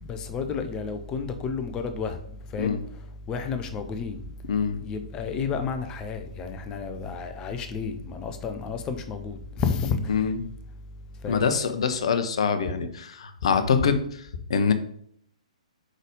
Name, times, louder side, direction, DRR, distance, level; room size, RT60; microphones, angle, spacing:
voice 1, 0.0-2.2 2.5-2.8 3.3-4.2 4.8-10.3 11.2-11.5, left 5 dB, 20° left, 0.7 m, -31 dB
voice 2, 11.3-14.7, left 6 dB, 55° left, 0.8 m, -24 dB
5.1 x 4.1 x 5.0 m
figure-of-eight pair, 125°, 4 cm